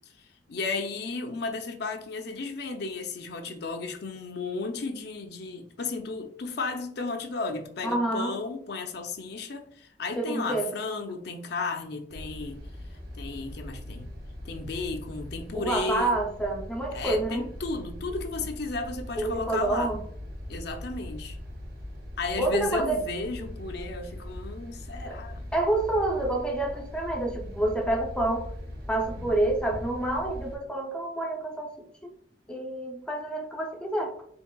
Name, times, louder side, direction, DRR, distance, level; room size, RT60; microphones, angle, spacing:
voice 1, 0.5-12.6 13.1-14.1 14.4-16.1 16.9-20.0 20.5-21.4 22.2-25.4 29.2-29.3, left 3 dB, 65° left, 5 dB, 0.5 m, -34 dB
voice 2, 7.8-8.4 10.2-10.7 15.5-17.5 19.2-20.0 22.4-23.0 25.0-25.2 25.5-28.5 28.9-32.1 32.5-34.1, right 2 dB, 5° left, 1 dB, 0.6 m, -28 dB
sound 1, 12.1-30.6, left 1 dB, 60° right, 1.0 m, -40 dB
4.5 x 3.5 x 2.3 m, 0.69 s
head